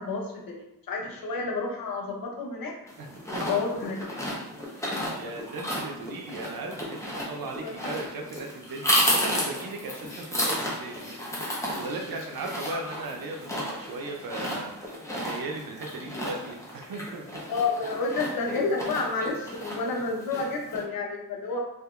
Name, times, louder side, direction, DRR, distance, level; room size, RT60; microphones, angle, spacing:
voice 1, 0.0-2.7 3.4-4.2 5.0-5.1 7.6-7.7 12.7-12.8 17.5-21.6, left 3 dB, 85° left, 0 dB, 0.6 m, -30 dB
sound 1, 2.9-20.8, equal, 10° left, 0.8 m, -32 dB
voice 2, 3.0-3.6 4.7-17.4, right 3 dB, 85° right, 2 dB, 0.5 m, -38 dB
2.7 x 2.5 x 2.4 m, 0.87 s
cardioid pair, 55°, 34 cm